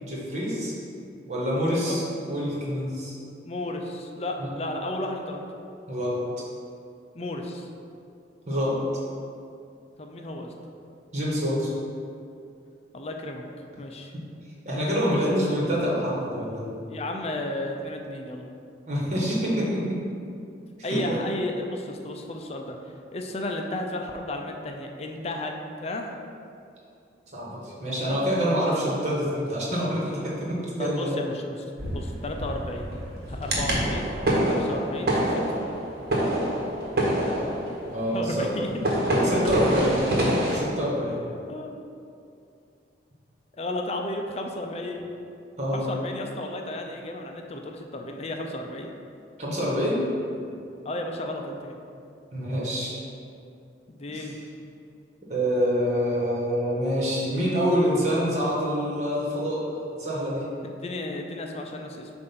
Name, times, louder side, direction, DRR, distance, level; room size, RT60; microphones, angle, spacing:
voice 1, 0.0-0.7 1.3-2.0 2.3-3.1 4.4-4.5 5.9-6.2 8.5-8.8 11.1-11.7 14.1-14.2 14.6-16.8 18.9-20.0 20.8-21.2 27.3-31.1 37.9-38.5 39.2-40.0 40.5-41.2 45.6-45.9 49.4-50.0 52.3-52.9 54.1-54.3 55.3-59.6 60.0-60.4, equal, 40° right, -5 dB, 1.5 m, -26 dB
voice 2, 1.7-2.0 3.4-5.4 7.1-7.7 10.0-10.5 12.9-13.4 13.8-14.1 15.0-15.4 16.9-18.5 20.8-22.8 23.1-25.5 25.8-26.1 28.0-28.2 30.8-33.0 33.3-34.1 34.5-35.4 38.1-38.9 39.4-39.5 40.4-40.7 41.5-41.8 43.6-45.0 45.7-48.9 50.8-51.8 53.9-54.4 60.6-62.1, left 1 dB, 35° left, 3 dB, 0.5 m, -33 dB
Bangs and booms, 31.8-40.6, right 1 dB, 55° right, 1.2 m, -26 dB
7.4 x 2.6 x 5.8 m, 2.5 s
head